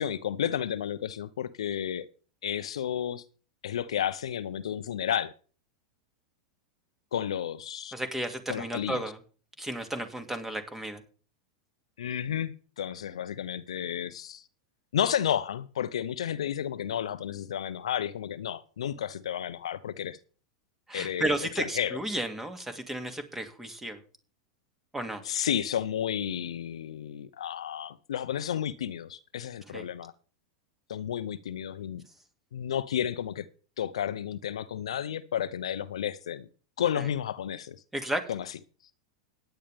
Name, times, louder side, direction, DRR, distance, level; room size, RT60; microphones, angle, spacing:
voice 1, 0.0-2.1 2.4-3.2 3.6-5.3 7.1-7.9 8.5-9.0 12.0-14.4 14.9-20.2 20.9-22.0 25.2-30.1 30.9-32.0 32.5-33.5 33.8-36.5 36.8-37.8 38.3-38.4, left 9 dB, 80° left, 0.7 m, -32 dB
voice 2, 7.9-9.2 9.6-11.0 20.9-24.0 24.9-25.2 29.7-29.8 37.0-37.1 37.9-38.2, right 1 dB, 10° right, 2.5 m, -33 dB
16.0 x 10.0 x 3.6 m
hypercardioid pair, 100°, 3 cm